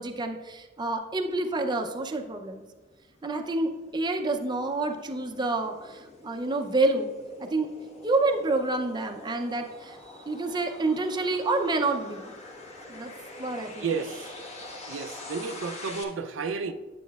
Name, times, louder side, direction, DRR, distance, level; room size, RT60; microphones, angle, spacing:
voice 1, 0.0-2.6 3.2-7.1 7.4-7.7 8.0-10.0 10.3-12.3 12.9-13.1 13.4-13.9, right 2 dB, 25° right, 0.5 m, -28 dB
sound 1, 2.8-16.0, left 2 dB, 35° left, 1.1 m, -45 dB
voice 2, 13.8-14.3 14.9-16.7, right 5 dB, 80° right, 0.4 m, -32 dB
9.2 x 8.3 x 2.3 m
head